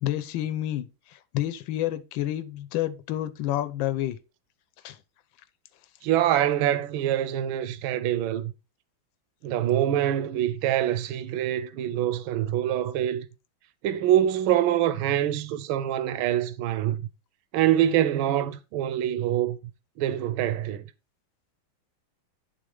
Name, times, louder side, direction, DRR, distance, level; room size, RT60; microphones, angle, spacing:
voice 1, 0.0-4.2 4.8-5.0, left 13 dB, 75° left, 1.5 m, -29 dB
voice 2, 6.0-8.5 9.4-13.3 13.8-17.0 17.5-19.6 20.0-20.8, right 11 dB, 85° right, 1.4 m, -25 dB
10.5 x 3.9 x 4.9 m
omnidirectional pair, 2.2 m